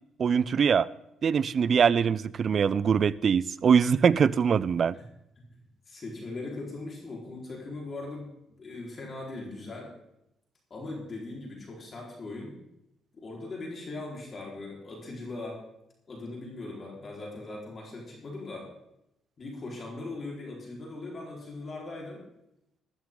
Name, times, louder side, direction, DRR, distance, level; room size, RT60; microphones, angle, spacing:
voice 1, 0.2-0.9 1.2-5.0, right 6 dB, 50° right, 0.5 m, -23 dB
voice 2, 5.9-8.3 8.6-9.9 10.7-12.6 13.1-15.6 16.1-18.7 19.4-22.2, left 2 dB, 40° left, 4.2 m, -39 dB
13.5 x 13.0 x 3.8 m
cardioid pair, 90°, 0 cm